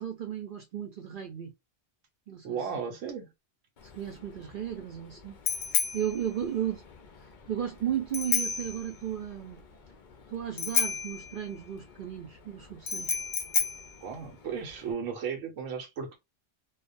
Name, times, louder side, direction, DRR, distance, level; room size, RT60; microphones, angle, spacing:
voice 1, 0.0-1.5 2.3-2.7 3.9-5.4 5.9-6.8 7.5-9.6 10.3-13.2, right 10 dB, 60° right, 0.6 m, -34 dB
voice 2, 2.4-3.3 14.0-16.2, right 6 dB, 85° right, 1.0 m, -35 dB
Bicycle bell, 3.8-14.9, left 6 dB, 55° left, 0.6 m, -33 dB
2.4 x 2.1 x 2.5 m
omnidirectional pair, 1.3 m